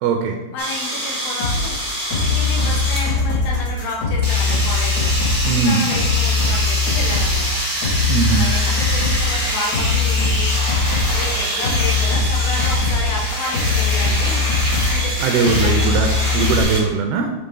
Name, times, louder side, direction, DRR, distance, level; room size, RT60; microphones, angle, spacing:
voice 1, 0.0-0.4 5.4-5.9 8.1-8.5 15.2-16.1 16.3-17.3, right 5 dB, 80° right, 3 dB, 2.3 m, -19 dB
voice 2, 0.5-1.8 2.2-5.1 5.5-7.5 8.4-14.5 14.9-16.0, left 2 dB, 65° left, -1 dB, 2.0 m, -31 dB
sound 1, 0.6-3.2 4.2-16.8, equal, 5° right, 0.8 m, -25 dB
sound 2, 1.4-16.6, left 4 dB, 80° left, 4.3 m, -21 dB
8.0 x 4.0 x 3.8 m, 1.1 s
omnidirectional pair, 4.7 m